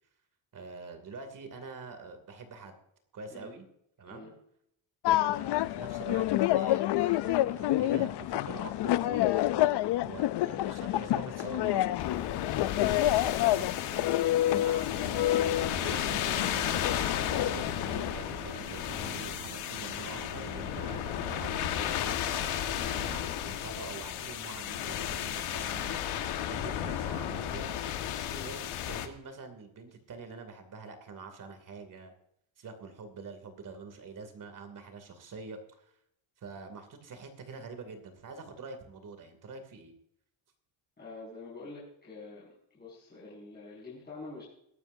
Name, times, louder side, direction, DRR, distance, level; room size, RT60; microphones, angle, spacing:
voice 1, 0.5-2.8 3.1-3.7 4.0-4.3 5.2-6.3 6.5-12.1 12.7-16.8 17.3-21.0 21.3-26.0 26.5-27.8 28.4-32.1 32.6-35.9 36.4-39.9, right 4 dB, 40° right, 7 dB, 2.6 m, -45 dB
sound 1, 5.0-18.1, left 14 dB, 60° left, 0.5 m, -28 dB
sound 2, 12.0-29.1, left 10 dB, 85° left, 1.6 m, -34 dB
sound 3, 14.9-21.8, right 8 dB, 55° right, 1.2 m, -47 dB
voice 2, 41.0-44.4, left 3 dB, 20° left, -8 dB, 5.9 m, -46 dB
22.5 x 12.0 x 2.7 m, 0.74 s
cardioid pair, 175°, 48 cm